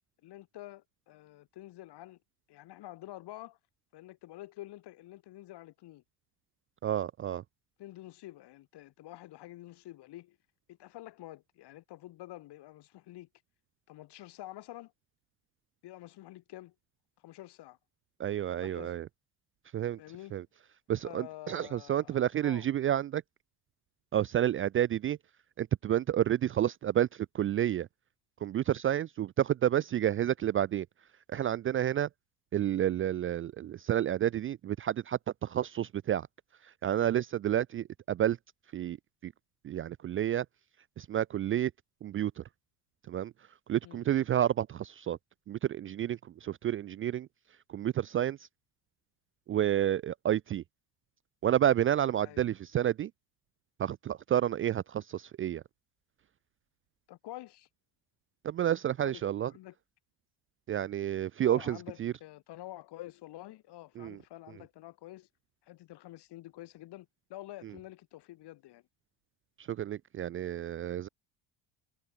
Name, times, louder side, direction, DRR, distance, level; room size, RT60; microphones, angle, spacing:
voice 1, 0.2-2.2 2.5-3.6 3.9-6.0 7.8-10.4 10.7-13.3 13.9-14.9 15.8-16.7 17.2-17.8 18.6-19.0 20.0-20.4 21.0-22.7 43.8-44.1 52.2-52.5 57.1-57.7 59.0-59.8 61.4-65.3 65.6-68.8, left 16 dB, 65° left, 7.1 m, -48 dB
voice 2, 6.8-7.4 18.2-19.0 19.7-20.0 20.3-20.4 20.9-23.2 24.1-25.2 25.6-27.1 27.3-27.9 28.4-30.8 31.3-32.1 32.5-36.2 36.8-38.4 38.7-39.0 39.2-39.3 39.6-40.4 41.0-41.7 42.0-42.4 43.1-43.3 43.7-45.2 45.5-47.3 47.7-48.4 49.5-50.6 51.4-53.1 53.8-55.6 58.4-59.5 60.7-62.1 64.0-64.2 69.7-71.1, right 11 dB, 30° right, 0.4 m, -30 dB
supercardioid pair, 95°, 44 cm